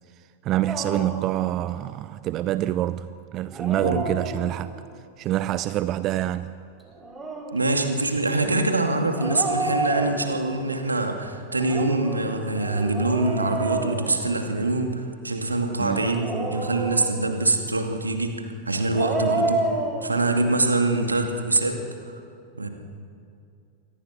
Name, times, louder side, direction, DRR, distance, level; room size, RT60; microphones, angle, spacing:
voice 1, 0.4-4.7 5.2-6.5 8.5-8.6 15.8-16.1, right 13 dB, 35° right, 0.5 m, -26 dB
Dog, 0.7-1.3 3.4-4.8 6.9-7.6 9.1-10.6 11.5-14.7 16.0-17.4 18.7-20.1, right 2 dB, 15° right, 4.1 m, -30 dB
voice 2, 3.7-4.0 7.5-19.7 20.0-21.8 22.1-22.2 22.6-22.7, right 2 dB, 80° right, 2.5 m, -24 dB
28.0 x 23.0 x 6.0 m
figure-of-eight pair, 90°, 0 cm